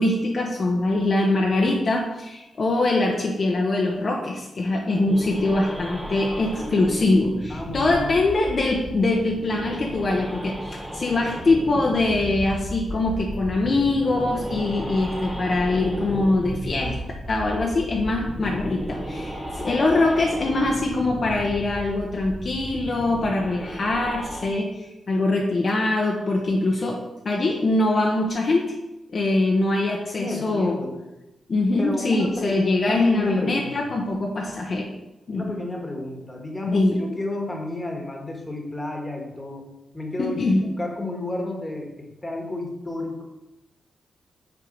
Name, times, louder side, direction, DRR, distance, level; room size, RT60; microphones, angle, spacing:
voice 1, 0.0-17.0 17.3-28.7 29.1-30.8 31.5-34.9 35.3-35.5 36.7-37.0 40.2-40.7, left 2 dB, 45° left, -1 dB, 1.0 m, -23 dB
sound 1, 5.1-24.5, equal, 5° right, 0.9 m, -34 dB
voice 2, 7.5-8.2 30.2-31.0 31.8-33.9 35.3-39.6 39.9-43.2, left 2 dB, 15° left, 1 dB, 1.6 m, -32 dB
7.0 x 4.5 x 5.2 m, 0.96 s
wide cardioid pair, 120°, 0 cm